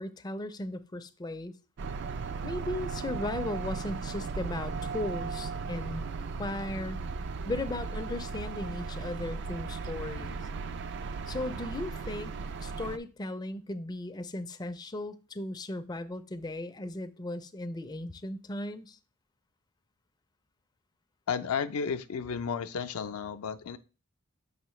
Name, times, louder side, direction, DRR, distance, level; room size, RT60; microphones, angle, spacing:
voice 1, 0.0-1.5 2.4-6.1 6.4-7.0 7.4-10.4 11.3-12.3 12.6-19.0, left 1 dB, 20° left, 0.4 m, -36 dB
sound 1, 1.8-13.0, right 4 dB, 50° right, 0.3 m, -36 dB
voice 2, 21.3-23.8, left 6 dB, 75° left, 0.5 m, -33 dB
6.7 x 5.6 x 3.1 m
head